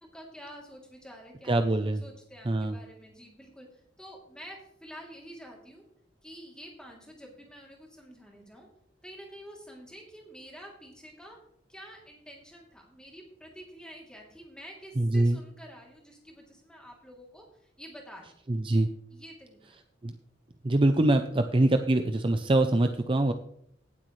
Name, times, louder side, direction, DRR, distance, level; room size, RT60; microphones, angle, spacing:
voice 1, 0.1-1.6 2.0-5.8 6.2-8.7 9.0-11.4 11.7-17.4 17.8-18.3 19.1-19.8, equal, 5° left, -1 dB, 2.9 m, -48 dB
voice 2, 1.5-2.0 2.5-2.8 15.0-15.4 18.5-18.9 20.0-20.1 20.6-23.3, right 1 dB, 30° right, 7 dB, 0.6 m, -24 dB
17.5 x 8.1 x 3.2 m, 0.69 s
head